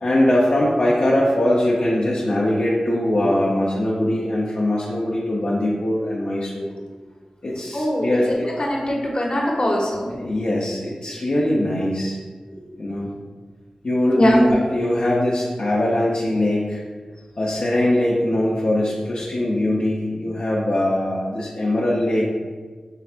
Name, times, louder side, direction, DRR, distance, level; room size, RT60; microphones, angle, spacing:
voice 1, 0.0-6.7 7.4-8.5 10.2-12.2 12.8-13.1 13.8-16.8 17.4-22.2, left 1 dB, 70° left, -7 dB, 0.7 m, -21 dB
voice 2, 7.7-8.1 8.6-10.1 12.5-12.7 14.1-14.5, equal, 45° left, -3 dB, 1.0 m, -21 dB
5.7 x 3.4 x 2.5 m, 1.4 s
wide cardioid pair, 60°, 2 cm